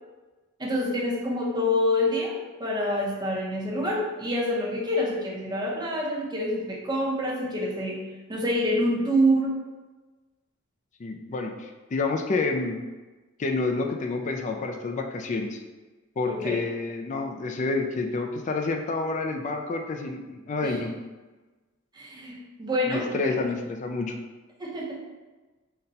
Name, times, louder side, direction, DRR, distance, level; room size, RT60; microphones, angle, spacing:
voice 1, 0.6-8.0 8.3-9.5 16.3-16.6 20.6-20.7 21.9-23.4 24.6-25.0, equal, 20° right, -3 dB, 0.7 m, -27 dB
voice 2, 11.0-12.8 13.4-15.6 16.2-21.0 22.9-24.1, left 3 dB, 35° left, 3 dB, 0.3 m, -29 dB
4.0 x 2.2 x 4.0 m, 1.2 s
head